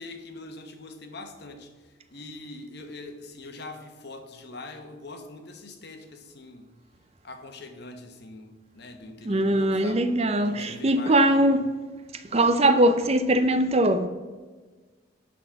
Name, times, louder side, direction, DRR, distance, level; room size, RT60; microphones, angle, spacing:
voice 1, 0.0-6.7 7.2-10.0 10.4-11.7, left 2 dB, 55° left, 1.2 m, -43 dB
voice 2, 9.2-11.7 12.3-14.1, right 1 dB, 30° right, 0.5 m, -21 dB
11.5 x 4.1 x 7.1 m
head